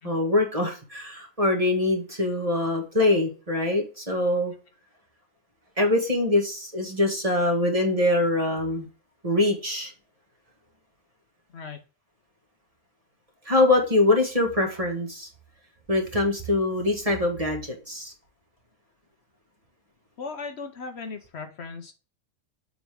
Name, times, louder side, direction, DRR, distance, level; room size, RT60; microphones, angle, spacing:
voice 1, 0.0-4.5 5.8-8.9 9.2-9.9 13.5-15.3 15.9-18.1, left 2 dB, 25° right, 2 dB, 1.8 m, -23 dB
voice 2, 20.2-21.9, left 4 dB, 60° left, 7 dB, 1.1 m, -37 dB
7.2 x 4.8 x 3.5 m, 0.35 s
omnidirectional pair, 1.3 m